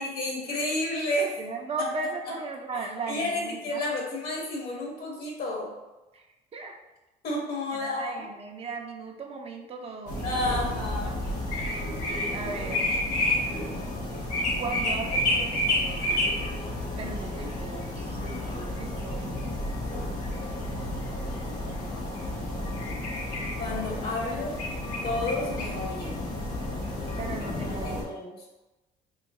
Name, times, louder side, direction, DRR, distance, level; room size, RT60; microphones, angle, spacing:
voice 1, 0.0-1.3 3.1-5.7 7.2-8.3 10.2-11.2 23.6-24.5 25.0-26.3 27.7-28.3, left 1 dB, 65° left, -2 dB, 1.4 m, -31 dB
voice 2, 1.4-3.9 6.1-6.2 6.5-6.8 7.7-10.6 11.0-11.2 12.3-12.8 14.6-16.2 17.0-18.2 18.8-19.4 24.2-24.3 27.2-28.1, right 3 dB, 35° right, 3 dB, 0.5 m, -37 dB
sound 1, 10.1-28.0, left 1 dB, 85° left, 1.1 m, -30 dB
3.1 x 2.7 x 3.6 m, 1.1 s
cardioid pair, 110°, 17 cm